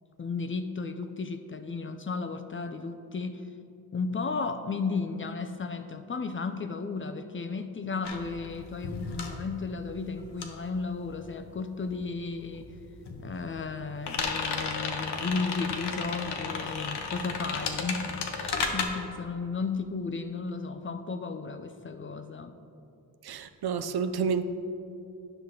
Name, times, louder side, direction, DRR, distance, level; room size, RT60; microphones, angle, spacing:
voice 1, 0.2-3.5 3.9-12.7 13.2-22.6, left 4 dB, 30° left, 8 dB, 0.4 m, -34 dB
sound 1, 8.0-11.9 12.1-18.8, left 5 dB, 80° left, 0.9 m, -34 dB
voice 2, 23.2-24.4, right 6 dB, 70° right, 10 dB, 0.5 m, -29 dB
9.9 x 5.9 x 3.7 m, 2.7 s
wide cardioid pair, 85°, 40 cm